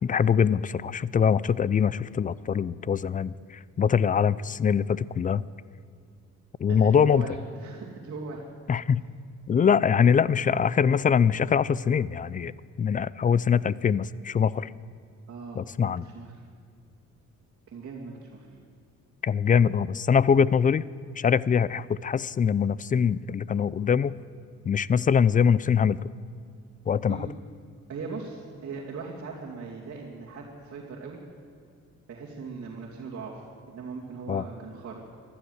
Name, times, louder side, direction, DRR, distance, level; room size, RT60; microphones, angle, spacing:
voice 1, 0.0-5.4 6.6-7.3 8.7-9.0 9.5-12.5 12.8-14.7 15.6-16.1 19.2-20.8 21.2-24.1 24.7-26.1 26.9-27.3 34.3-34.4, left 7 dB, 25° left, 20 dB, 0.4 m, -23 dB
voice 2, 6.7-8.4 15.3-16.4 17.7-18.5 27.1-27.3 27.9-31.2 32.1-35.0, right 4 dB, 55° right, -4 dB, 2.5 m, -39 dB
14.5 x 12.0 x 8.0 m, 2.3 s
cardioid pair, 90°, 30 cm